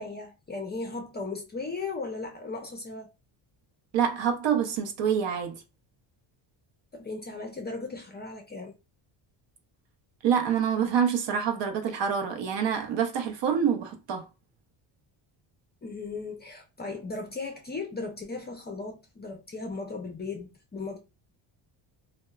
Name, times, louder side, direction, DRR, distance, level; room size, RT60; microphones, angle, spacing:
voice 1, 0.0-3.1 6.9-8.7 15.8-21.0, left 3 dB, 20° left, 0.4 m, -37 dB
voice 2, 3.9-5.6 10.2-14.3, right 7 dB, 60° right, 0.7 m, -26 dB
2.8 x 2.2 x 2.2 m
cardioid pair, 100°, 50 cm